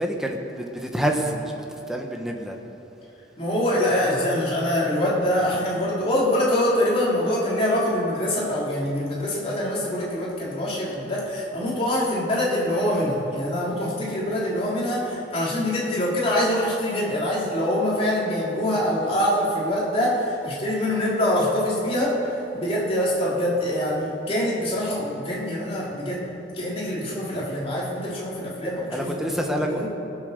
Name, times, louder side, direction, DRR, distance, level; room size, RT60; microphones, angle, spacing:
voice 1, 0.0-2.6 28.9-29.9, equal, ahead, 1 dB, 1.2 m, -27 dB
voice 2, 3.4-29.9, left 1 dB, 35° left, -6 dB, 3.4 m, -24 dB
20.0 x 8.0 x 6.7 m, 2.8 s
head